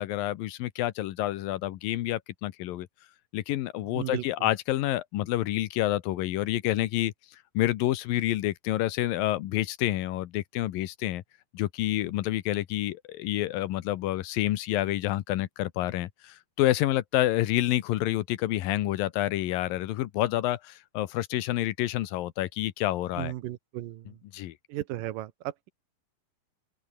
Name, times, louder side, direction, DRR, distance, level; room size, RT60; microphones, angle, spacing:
voice 1, 0.0-2.9 3.3-7.1 7.5-11.2 11.5-23.3 24.3-24.5, left 15 dB, 90° left, 2.8 m, -28 dB
voice 2, 23.2-24.1 24.7-25.7, right 14 dB, 85° right, 2.7 m, -35 dB
open air
omnidirectional pair, 3.9 m